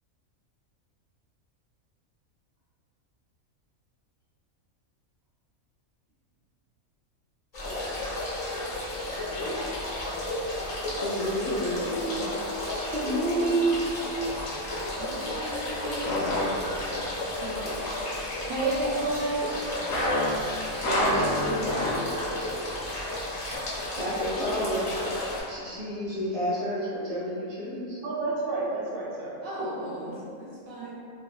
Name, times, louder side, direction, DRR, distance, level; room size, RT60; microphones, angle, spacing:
sound 1, 7.5-25.4, left 1 dB, 45° left, 0.5 m, -33 dB
voice 1, 11.0-12.3 24.0-24.9 25.5-28.0, equal, 30° right, -10 dB, 0.7 m, -31 dB
voice 2, 12.9-13.8 17.4-17.5 18.5-19.4 20.8-22.2 28.0-29.4, right 2 dB, 65° right, -6 dB, 0.5 m, -28 dB
sound 2, 14.2-14.5 16.0-17.1 19.9-22.4 22.7-22.8 23.5-23.6, left 1 dB, 80° left, 1.0 m, -28 dB
voice 3, 14.9-16.3 29.4-30.1 30.4-31.0, right 2 dB, 80° right, -9 dB, 1.3 m, -38 dB
2.8 x 2.4 x 2.2 m, 2.5 s
omnidirectional pair, 1.4 m